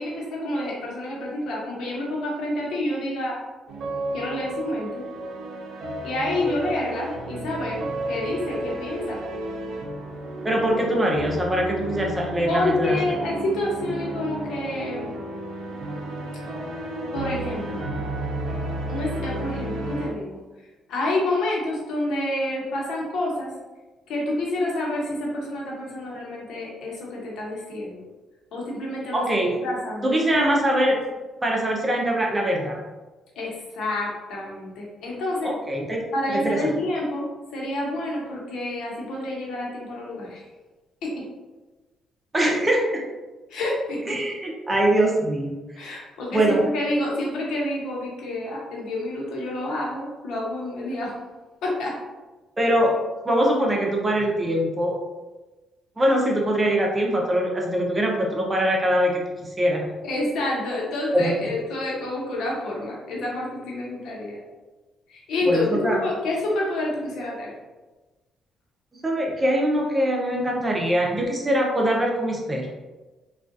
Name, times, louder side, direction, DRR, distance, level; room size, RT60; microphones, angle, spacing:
voice 1, 0.0-3.4 4.1-5.0 6.0-9.2 12.5-15.1 17.1-17.8 18.9-20.4 20.9-23.5 24.1-28.0 28.5-30.5 30.7-30.8 33.4-35.5 36.1-40.4 41.0-41.1 43.5-44.2 45.8-51.1 51.6-51.9 60.0-64.4 65.1-67.5, left 1 dB, 80° left, -3 dB, 0.9 m, -28 dB
sound 1, 3.7-20.1, right 1 dB, 70° right, 0.6 m, -32 dB
voice 2, 10.4-13.0 29.1-29.5 30.0-31.0 31.4-32.8 35.4-36.1 36.4-36.7 42.3-43.0 44.1-45.6 45.9-46.0 46.3-46.6 52.6-53.0 53.2-54.9 56.0-59.8 61.1-61.5 65.4-66.0 68.9-72.7, right 1 dB, 20° right, -1 dB, 0.7 m, -23 dB
3.6 x 2.4 x 2.5 m, 1.2 s
cardioid pair, 90°, 0 cm